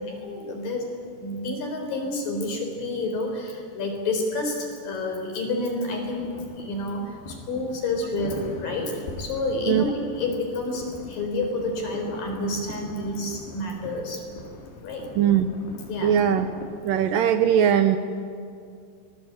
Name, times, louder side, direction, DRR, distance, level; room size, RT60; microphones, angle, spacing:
voice 1, 0.1-0.9 1.2-14.2 14.8-15.1 15.9-16.2, left 2 dB, 60° left, 2 dB, 5.6 m, -29 dB
sound 1, 6.0-16.8, left 3 dB, 80° left, 4.7 m, -41 dB
voice 2, 15.2-15.5 16.0-16.5 16.8-18.0, right 9 dB, 75° right, 9 dB, 2.2 m, -20 dB
24.5 x 20.0 x 8.7 m, 2.4 s
omnidirectional pair, 4.5 m